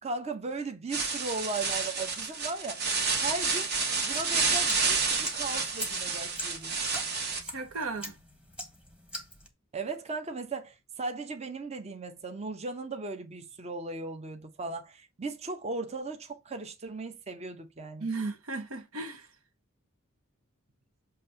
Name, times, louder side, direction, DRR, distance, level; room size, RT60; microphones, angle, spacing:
voice 1, 0.0-2.8 3.2-3.7 4.0-6.7 9.7-18.1, right 3 dB, 30° right, 0.7 m, -37 dB
sound 1, 0.9-7.4, right 4 dB, 50° right, 1.3 m, -29 dB
sound 2, 4.1-9.5, equal, 5° right, 1.2 m, -43 dB
voice 2, 7.4-8.1 18.0-19.3, right 3 dB, 85° right, 1.0 m, -35 dB
7.2 x 2.7 x 5.6 m
head